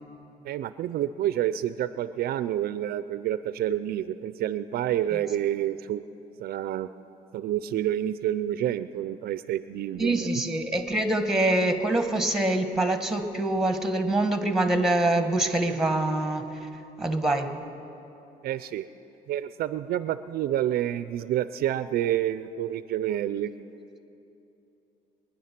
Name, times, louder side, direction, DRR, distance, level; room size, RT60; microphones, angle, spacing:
voice 1, 0.4-6.0 6.4-6.9 7.3-10.4 18.4-18.9 19.3-23.5, right 12 dB, 65° right, 13 dB, 0.5 m, -28 dB
voice 2, 10.0-16.5 17.0-17.5, right 2 dB, 5° right, 7 dB, 1.3 m, -25 dB
24.0 x 10.0 x 5.9 m, 2.9 s
cardioid pair, 110°, 17 cm